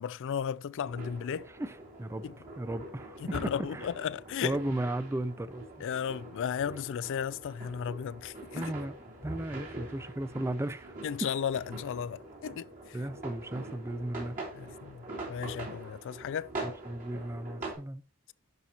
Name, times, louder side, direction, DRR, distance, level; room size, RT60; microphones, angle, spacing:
voice 1, 0.0-1.5 2.2-2.4 3.2-4.6 5.8-8.7 11.0-13.0 14.5-16.5, left 8 dB, 60° left, 0.3 m, -35 dB
sound 1, 0.8-17.7, right 2 dB, 40° right, 3.1 m, -44 dB
voice 2, 1.6-2.2 2.6-3.9 4.4-5.6 8.5-9.0 9.2-10.9 12.9-14.4 16.6-18.0, right 1 dB, 10° right, 0.4 m, -35 dB
11.0 x 5.7 x 2.9 m
head